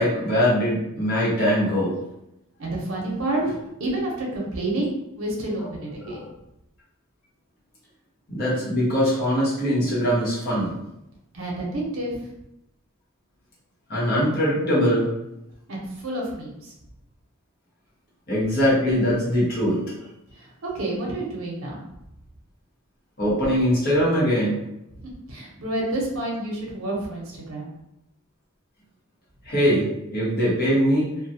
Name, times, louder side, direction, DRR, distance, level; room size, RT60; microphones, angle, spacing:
voice 1, 0.0-1.9 6.0-6.3 8.3-10.8 13.9-15.1 18.3-19.8 23.2-24.6 29.4-29.9 30.1-31.1, equal, 50° left, -7 dB, 1.1 m, -22 dB
voice 2, 2.6-3.4 3.8-4.9 5.2-6.2 11.3-12.2 15.7-16.7 20.4-21.8 25.3-27.7, right 1 dB, 75° right, -3 dB, 0.7 m, -29 dB
2.3 x 2.3 x 2.7 m, 0.86 s
head